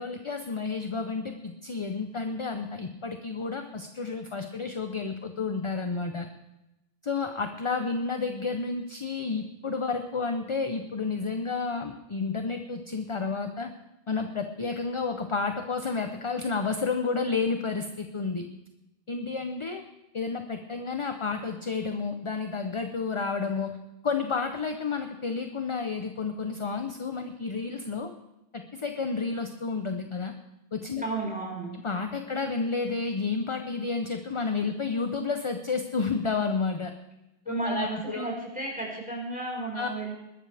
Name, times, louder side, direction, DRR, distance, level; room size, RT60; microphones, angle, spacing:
voice 1, 0.0-6.3 7.0-13.7 14.1-18.5 19.1-19.8 20.1-23.8 24.0-28.1 28.5-30.3 30.7-31.0 31.7-36.9 37.5-38.3 39.7-39.9, left 4 dB, 35° left, 6 dB, 0.8 m, -31 dB
voice 2, 31.0-31.7 37.4-40.1, right 2 dB, 10° right, -3 dB, 4.9 m, -33 dB
21.0 x 12.5 x 3.4 m, 0.93 s
omnidirectional pair, 1.0 m